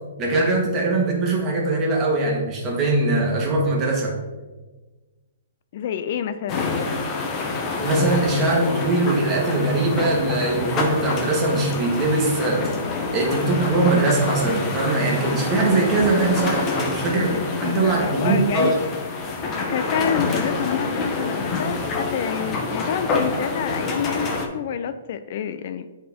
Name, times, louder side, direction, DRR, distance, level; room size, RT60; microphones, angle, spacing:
voice 1, 0.2-4.1 7.8-12.6 13.1-18.8, right 2 dB, 20° right, -1 dB, 1.5 m, -21 dB
voice 2, 5.7-6.7 17.2-18.8 19.7-25.9, left 9 dB, 45° left, 11 dB, 0.3 m, -28 dB
sound 1, 6.5-24.5, left 3 dB, 20° left, 0.9 m, -27 dB
8.4 x 4.3 x 3.6 m, 1.2 s
hypercardioid pair, 160°, 0 cm